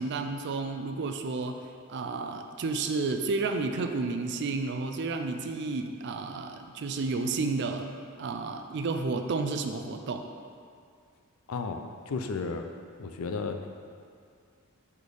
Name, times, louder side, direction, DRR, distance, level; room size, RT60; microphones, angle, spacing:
voice 1, 0.0-1.6 1.9-7.9 8.2-10.3, right 3 dB, 55° right, 6 dB, 0.4 m, -31 dB
voice 2, 11.5-12.7 13.0-13.7, left 4 dB, 70° left, 6 dB, 0.4 m, -33 dB
5.1 x 4.2 x 4.7 m, 2.3 s
head